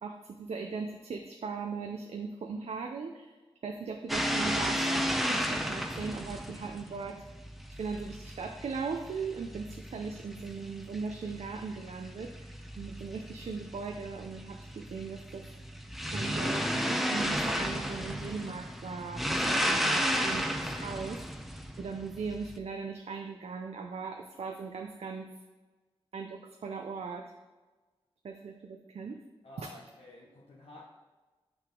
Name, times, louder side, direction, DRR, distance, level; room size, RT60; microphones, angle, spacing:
voice 1, 0.0-3.3 3.6-7.2 7.8-12.3 12.8-15.4 16.1-21.2 21.8-25.3 26.1-27.3 28.2-29.2 29.6-29.7, right 5 dB, 85° right, 3 dB, 0.6 m, -39 dB
sound 1, 4.1-22.6, equal, ahead, 0.7 m, -34 dB
voice 2, 29.4-30.9, left 2 dB, 70° left, -3 dB, 1.0 m, -51 dB
6.8 x 6.1 x 3.7 m, 1.2 s
cardioid pair, 55°, 10 cm